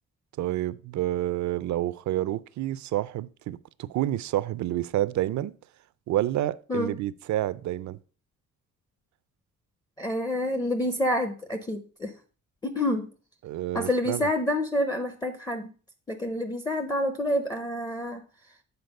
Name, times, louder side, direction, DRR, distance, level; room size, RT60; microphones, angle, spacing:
voice 1, 0.4-5.5 6.1-8.0 13.4-14.3, right 14 dB, 65° right, 0.4 m, -29 dB
voice 2, 10.0-12.1 12.6-13.1 13.7-15.7 16.1-18.2, left 1 dB, 15° left, 0.5 m, -28 dB
8.0 x 4.1 x 5.2 m
cardioid pair, 170°, 31 cm